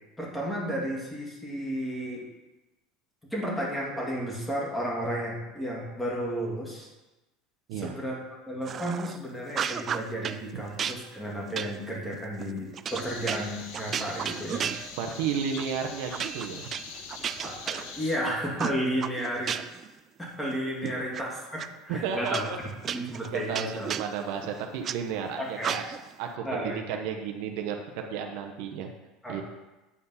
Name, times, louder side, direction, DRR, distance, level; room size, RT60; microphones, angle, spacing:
voice 1, 0.2-2.2 3.3-6.9 7.7-14.7 17.4-19.6 20.2-22.5 22.9-23.9 25.4-25.7 26.4-27.0 29.2-29.4, equal, 5° left, -3 dB, 2.2 m, -33 dB
sound 1, 8.6-9.2 9.5-10.4 10.8-15.2 15.6-15.7 16.1-18.2 18.6-19.9 20.2-21.2 21.6-21.7 22.2-25.0 25.6-26.1, right 8 dB, 30° right, 0.3 m, -34 dB
sound 2, 12.9-18.2, left 5 dB, 75° left, 1.2 m, -43 dB
voice 2, 15.0-16.7 21.9-22.6 23.3-25.8 26.2-28.9 29.3-29.4, right 7 dB, 70° right, 3 dB, 0.9 m, -33 dB
8.4 x 4.6 x 5.6 m, 1.1 s
supercardioid pair, 135°, 0 cm